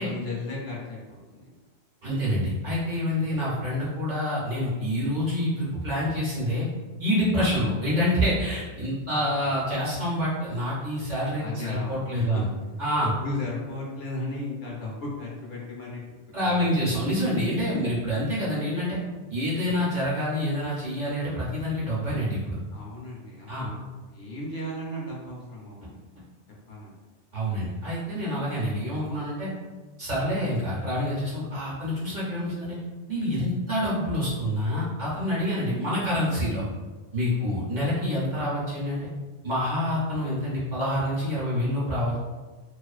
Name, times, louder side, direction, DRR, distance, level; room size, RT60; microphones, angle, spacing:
voice 1, 0.0-1.5 3.2-3.4 9.1-9.5 11.4-16.0 16.4-16.7 17.7-17.9 19.5-19.8 22.7-26.0 26.7-27.0 37.3-37.6, left 2 dB, 65° left, -3 dB, 0.8 m, -36 dB
voice 2, 2.0-6.7 7.0-12.5 12.8-13.1 16.3-19.0 19.3-22.6 23.5-23.7 27.3-29.5 30.0-32.8 33.1-36.6 37.1-39.1 39.4-42.2, equal, 50° right, -8 dB, 0.7 m, -27 dB
2.4 x 2.3 x 2.3 m, 1.3 s
omnidirectional pair, 1.2 m